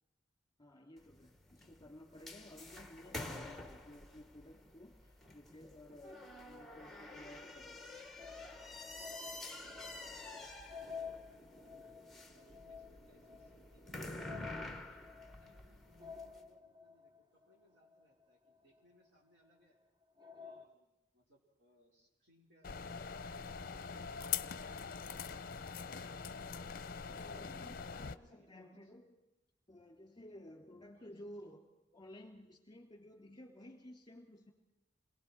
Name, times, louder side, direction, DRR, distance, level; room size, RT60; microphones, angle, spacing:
voice 1, 0.6-8.2 27.1-29.1 29.7-34.5, left 1 dB, 25° left, 2 dB, 2.7 m, -55 dB
sound 1, 1.0-16.4, left 2 dB, ahead, 1.4 m, -49 dB
sound 2, 8.2-19.0 19.5-19.6 20.2-20.7, left 6 dB, 25° right, 1.1 m, -52 dB
voice 2, 10.8-12.0 12.3-19.8 20.4-23.0 23.6-24.0 24.8-25.7 27.6-28.9 30.9-31.1 33.2-33.4, equal, 70° right, -2 dB, 5.3 m, -71 dB
sound 3, 22.6-28.1, left 7 dB, 55° left, 0.6 m, -43 dB
28.0 x 21.5 x 4.7 m, 0.94 s
head